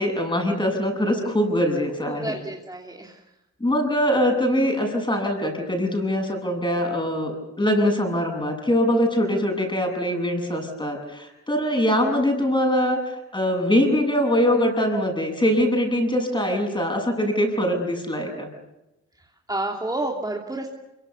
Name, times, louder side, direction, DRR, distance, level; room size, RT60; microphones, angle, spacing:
voice 1, 0.0-2.3 3.6-18.5, equal, 15° left, 4 dB, 7.7 m, -23 dB
voice 2, 2.1-3.2 19.5-20.7, right 2 dB, 10° right, 1 dB, 2.8 m, -29 dB
25.0 x 23.5 x 7.0 m, 0.94 s
cardioid pair, 90°, 30 cm